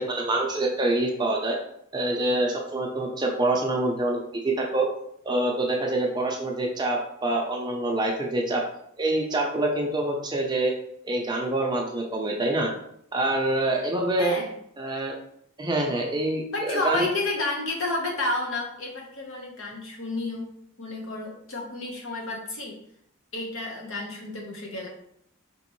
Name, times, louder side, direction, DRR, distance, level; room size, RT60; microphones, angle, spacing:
voice 1, 0.0-1.6 1.9-4.9 5.2-8.6 9.0-10.7 11.0-12.7 13.1-14.4 14.8-15.1 15.6-17.1, right 2 dB, 20° right, 0 dB, 0.6 m, -26 dB
voice 2, 14.2-14.5 16.5-20.5 20.8-22.7 23.3-24.9, left 2 dB, 65° left, -1 dB, 1.2 m, -31 dB
5.1 x 3.1 x 3.1 m, 0.70 s
head